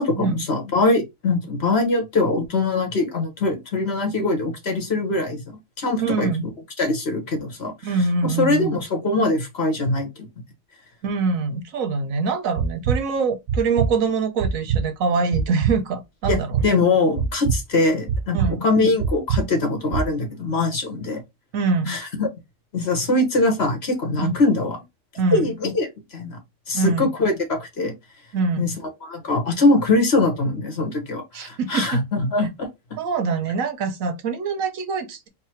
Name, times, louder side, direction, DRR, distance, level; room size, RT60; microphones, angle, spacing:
voice 1, 0.0-5.4 5.8-6.3 6.8-7.7 8.2-10.3 16.3-21.2 21.9-22.3 22.7-24.8 25.3-25.9 26.1-26.4 26.7-27.9 28.6-28.7 29.0-32.7, left 2 dB, 50° left, 1.4 m, -22 dB
voice 2, 6.0-6.4 7.8-8.7 11.0-16.7 18.3-18.7 21.5-22.0 24.2-24.3 25.2-25.5 26.7-27.1 28.3-28.7 31.3-32.0 33.0-35.3, right 4 dB, 90° right, 1.2 m, -24 dB
sound 1, 12.6-13.0 13.5-13.9 14.4-14.8 15.3-15.7 16.2-16.7 17.2-17.6 18.1-18.5 19.0-19.4 19.9-20.1, right 6 dB, 65° right, 0.9 m, -22 dB
4.1 x 2.1 x 4.3 m
omnidirectional pair, 1.4 m